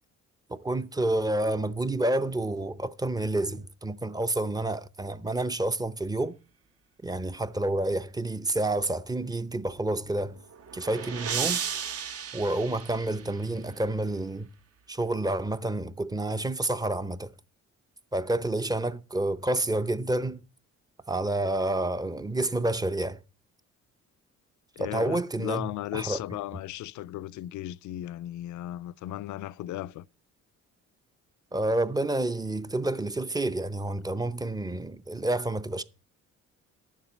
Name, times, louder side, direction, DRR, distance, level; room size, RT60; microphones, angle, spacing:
voice 1, 0.5-6.4 7.0-10.4 10.7-11.6 12.3-14.5 14.9-17.3 18.1-20.4 21.1-23.2 24.8-26.2 31.5-35.8, right 2 dB, 15° right, 0.6 m, -29 dB
sound 1, 10.2-13.6, right 7 dB, 50° right, 1.0 m, -34 dB
voice 2, 24.8-30.1, left 14 dB, 75° left, 0.5 m, -36 dB
10.5 x 7.4 x 5.0 m
cardioid pair, 90°, 30 cm